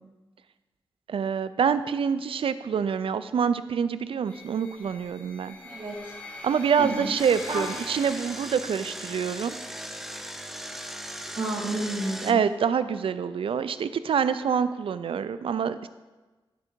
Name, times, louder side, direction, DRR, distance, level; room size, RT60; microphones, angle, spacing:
voice 1, 1.1-5.6 6.4-9.6 12.2-15.9, right 7 dB, 75° right, 13 dB, 0.4 m, -26 dB
sound 1, 4.3-9.3, left 2 dB, 15° left, 1.1 m, -44 dB
voice 2, 5.6-6.1 6.8-7.1 7.5-7.6 11.4-12.4, right 2 dB, 55° right, -2 dB, 1.8 m, -31 dB
Engine, 7.2-12.3, equal, 5° right, 0.5 m, -38 dB
10.5 x 3.8 x 4.5 m, 1.2 s
wide cardioid pair, 85°, 9 cm